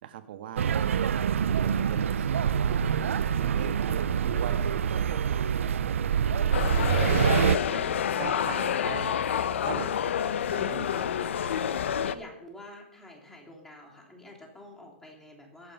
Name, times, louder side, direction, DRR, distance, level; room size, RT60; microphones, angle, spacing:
voice 1, 0.0-2.9 3.3-6.1 7.5-7.8 8.2-9.2 9.6-10.0 10.5-11.0, right 10 dB, 50° right, 8 dB, 1.7 m, -41 dB
sound 1, 0.6-7.6, right 8 dB, 85° right, 0.8 m, -26 dB
sound 2, 6.5-12.1, left 8 dB, 70° left, 0.9 m, -28 dB
voice 2, 11.8-15.7, left 1 dB, 5° left, -1 dB, 3.4 m, -48 dB
23.0 x 8.3 x 5.5 m, 0.77 s
hypercardioid pair, 160°, 7 cm